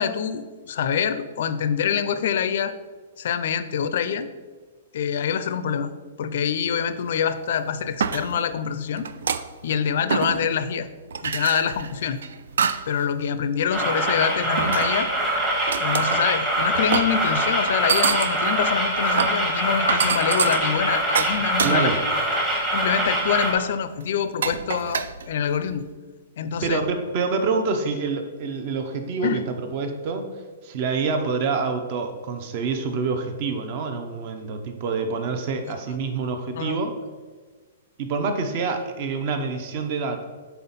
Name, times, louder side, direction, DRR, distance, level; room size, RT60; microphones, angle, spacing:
voice 1, 0.0-2.7 3.2-4.3 4.9-5.9 6.2-9.1 9.6-10.9 11.2-12.2 12.9-15.1 15.8-21.9 22.7-25.9 26.4-26.8 29.2-29.4 36.6-36.8, left 7 dB, 55° left, 12 dB, 0.4 m, -25 dB
sound 1, 7.0-7.1 7.7-8.6 9.0-9.8 10.1-10.7 11.1-13.0 13.4-13.7 14.6-15.2 15.7-16.3 16.7-17.2 17.7-22.1 22.5-22.8 23.2-23.3 24.0-24.1 24.4-25.8, right 6 dB, 80° right, 0.3 m, -27 dB
sound 2, 13.7-23.5, right 1 dB, 15° right, 1.0 m, -24 dB
voice 2, 21.6-22.0 26.6-30.2 30.6-37.0 38.0-40.2, right 4 dB, 35° right, 6 dB, 0.6 m, -26 dB
5.6 x 4.2 x 4.0 m, 1.4 s
hypercardioid pair, 170°, 0 cm